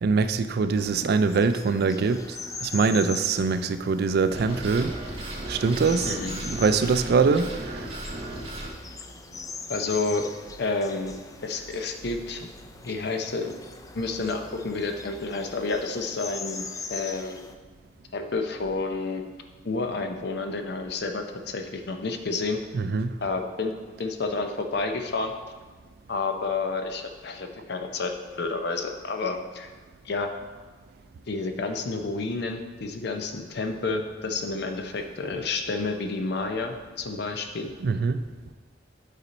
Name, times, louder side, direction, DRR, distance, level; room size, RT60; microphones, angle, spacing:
voice 1, 0.0-5.0 5.5-6.2 6.4-7.9 22.7-23.1 37.8-38.2, right 4 dB, 60° right, 11 dB, 0.4 m, -23 dB
sound 1, 0.7-17.5, left 4 dB, 20° left, 0.4 m, -41 dB
sound 2, 4.3-8.7, right 1 dB, 30° right, 1.1 m, -35 dB
voice 2, 9.7-10.3 10.6-11.2 11.4-12.5 12.8-13.5 13.9-17.4 18.1-19.2 19.6-22.6 23.2-23.7 24.0-25.3 26.1-29.7 30.0-30.3 31.3-37.7, left 3 dB, 65° left, 5 dB, 0.6 m, -30 dB
8.2 x 4.2 x 4.1 m, 1.4 s
head